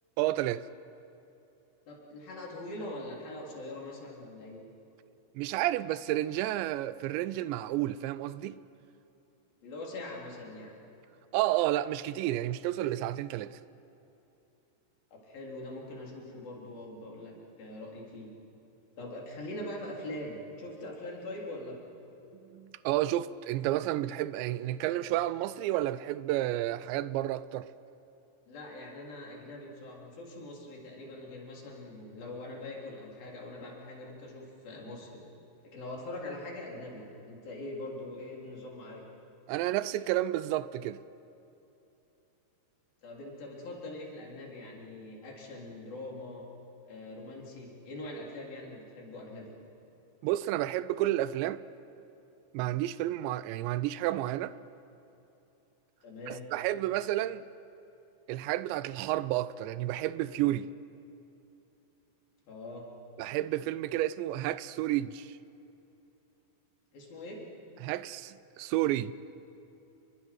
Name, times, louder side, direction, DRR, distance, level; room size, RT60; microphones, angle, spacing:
voice 1, 0.2-0.7 5.4-8.6 11.3-13.6 22.3-27.7 39.5-41.0 50.2-51.6 52.5-54.6 56.3-57.4 58.3-60.7 63.2-65.4 67.8-69.1, right 14 dB, 90° right, 2.9 m, -31 dB
voice 2, 1.9-4.6 9.6-10.7 15.1-18.3 19.0-21.8 28.5-35.2 35.6-39.0 43.0-46.4 46.8-49.5 56.0-56.5 62.5-62.9 66.9-67.4, left 1 dB, 55° left, 5.4 m, -42 dB
29.5 x 23.0 x 6.1 m
omnidirectional pair, 5.0 m